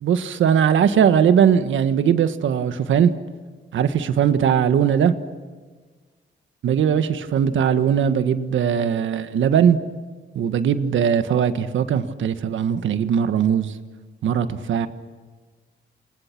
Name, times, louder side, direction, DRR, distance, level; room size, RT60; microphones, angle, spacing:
voice 1, 0.0-3.1 3.7-5.1 6.6-9.8 10.3-13.7 14.2-14.9, right 8 dB, 80° right, 10 dB, 1.6 m, -19 dB
30.0 x 27.5 x 6.1 m, 1.4 s
wide cardioid pair, 145°, 20 cm